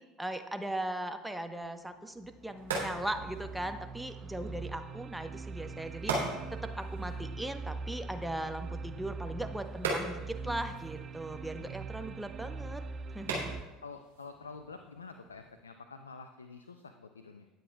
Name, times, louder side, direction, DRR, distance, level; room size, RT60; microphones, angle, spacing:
voice 1, 0.2-12.8 13.1-13.5, right 1 dB, 5° right, 7 dB, 0.9 m, -38 dB
sound 1, 1.6-1.7 2.3-13.6, right 4 dB, 35° right, 0.3 m, -42 dB
sound 2, 2.1-15.6, right 3 dB, 80° right, 2.9 m, -41 dB
voice 2, 11.5-12.1 13.8-17.5, left 4 dB, 85° left, 8 dB, 0.4 m, -48 dB
19.0 x 7.8 x 2.3 m, 1.1 s
figure-of-eight pair, 70°, 0 cm